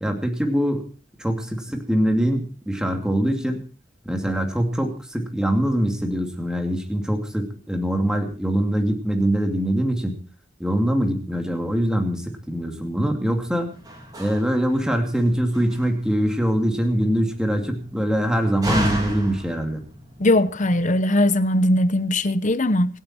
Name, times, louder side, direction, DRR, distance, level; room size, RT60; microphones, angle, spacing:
voice 1, 0.0-0.8 1.2-3.6 4.0-10.2 10.6-13.7 14.2-19.8, equal, 5° right, 2.6 m, -23 dB
Slam, 13.2-20.8, equal, 20° right, 4.4 m, -34 dB
voice 2, 20.2-23.0, left 1 dB, 40° left, 1.0 m, -20 dB
27.0 x 9.0 x 4.4 m
head